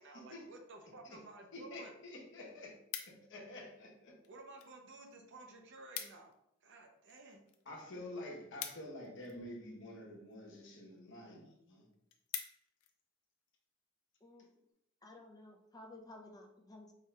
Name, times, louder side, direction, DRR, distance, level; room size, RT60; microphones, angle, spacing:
voice 1, 0.0-1.9 4.3-6.3 6.6-7.4, right 2 dB, 60° right, 3 dB, 0.6 m, -54 dB
voice 2, 1.5-2.7 3.3-4.2 7.7-11.8, left 1 dB, 65° left, -1 dB, 1.0 m, -48 dB
sound 1, 2.5-3.5 4.2-4.7 5.0-5.2 5.4-5.5 5.7-6.4 6.7-9.6 10.3-10.6 11.1-11.2 11.6-11.7 11.9-12.9 13.4-13.6, left 9 dB, 90° left, 0.5 m, -46 dB
voice 3, 14.2-14.6 15.0-16.9, left 2 dB, 20° left, 1 dB, 0.5 m, -54 dB
4.6 x 2.3 x 3.2 m, 0.79 s
head